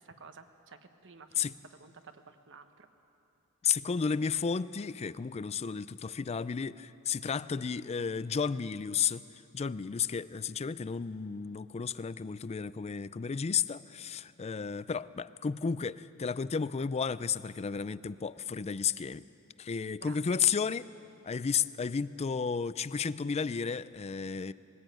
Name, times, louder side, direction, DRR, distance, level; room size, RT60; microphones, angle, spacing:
voice 1, 0.0-1.4 1.8-2.9 9.8-9.9 20.0-20.2, right 5 dB, 55° right, 8 dB, 1.1 m, -53 dB
voice 2, 3.6-9.2 9.5-19.2 19.6-20.9 21.2-24.5, left 6 dB, 30° left, 17 dB, 0.4 m, -32 dB
20.5 x 15.5 x 9.1 m, 2.8 s
head